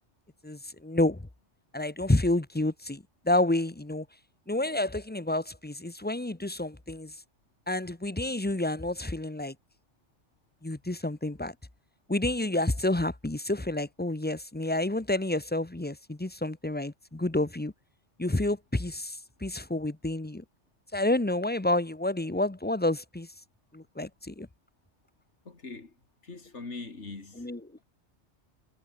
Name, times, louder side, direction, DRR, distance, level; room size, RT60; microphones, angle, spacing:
voice 1, 0.4-1.3 1.7-4.1 4.5-7.1 7.7-9.5 10.6-11.5 12.1-17.7 18.2-20.4 20.9-23.3 23.7-24.5 27.4-27.6, left 1 dB, 10° left, 0.8 m, -29 dB
voice 2, 25.4-25.9 26.2-27.5, left 3 dB, 90° left, 3.2 m, -42 dB
omnidirectional pair, 1.2 m